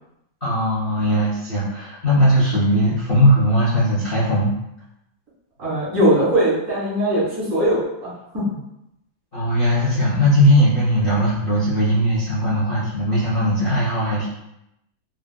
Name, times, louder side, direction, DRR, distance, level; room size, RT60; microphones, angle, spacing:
voice 1, 0.4-4.5 9.3-14.3, equal, 85° left, -10 dB, 0.4 m, -19 dB
voice 2, 5.6-8.6, equal, 40° right, -9 dB, 1.9 m, -20 dB
3.8 x 2.4 x 2.2 m, 0.84 s
omnidirectional pair, 2.1 m